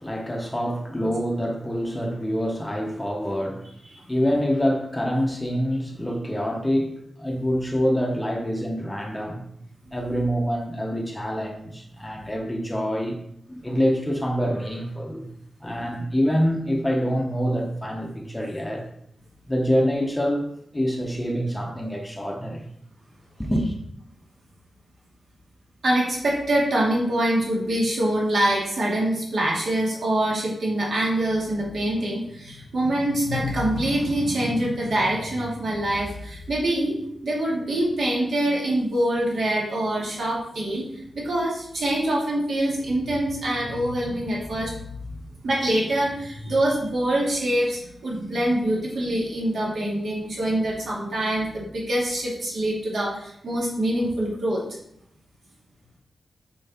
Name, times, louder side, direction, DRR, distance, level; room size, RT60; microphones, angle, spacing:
voice 1, 0.0-6.9 7.2-9.4 9.9-13.2 13.5-15.3 15.6-18.9 19.5-22.7 23.4-23.7, equal, 10° left, 2 dB, 0.9 m, -26 dB
voice 2, 25.8-37.0 37.2-44.8 45.4-54.6, right 1 dB, 65° right, -4 dB, 2.4 m, -25 dB
7.0 x 4.6 x 4.2 m, 0.72 s
wide cardioid pair, 145°, 0 cm